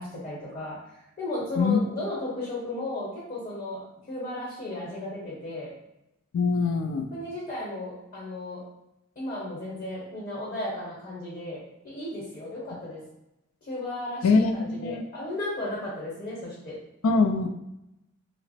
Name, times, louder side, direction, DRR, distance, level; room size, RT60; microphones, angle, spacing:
voice 1, 0.0-5.7 7.1-8.6 9.1-13.0 13.6-16.8, left 1 dB, 35° left, -6 dB, 1.0 m, -35 dB
voice 2, 6.3-7.0 14.2-14.5 14.8-15.0 17.0-17.5, left 4 dB, 85° left, 7 dB, 0.4 m, -22 dB
2.9 x 2.1 x 4.0 m, 0.90 s
head